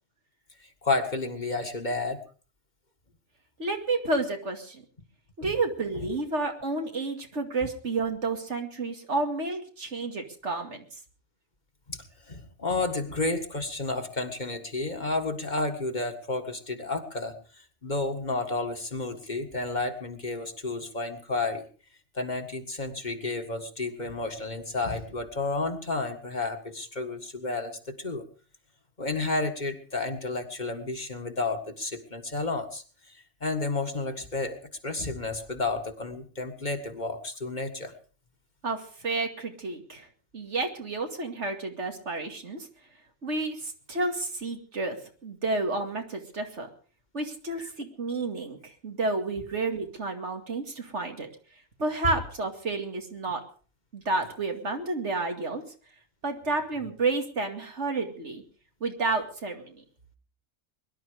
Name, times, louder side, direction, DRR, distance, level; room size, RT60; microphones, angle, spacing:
voice 1, 0.8-2.2 5.4-5.5 5.9-6.2 11.9-21.7 22.2-28.2 29.0-37.9 47.6-47.7, left 3 dB, 40° left, 5 dB, 2.0 m, -31 dB
voice 2, 3.6-4.8 5.4-10.9 38.6-40.1 40.3-42.7 43.2-45.0 45.2-46.7 47.1-51.3 51.8-53.4 53.9-55.6 56.2-58.4 58.8-59.8, right 3 dB, 85° right, 4 dB, 2.7 m, -30 dB
22.0 x 11.5 x 5.1 m, 0.41 s
omnidirectional pair, 1.2 m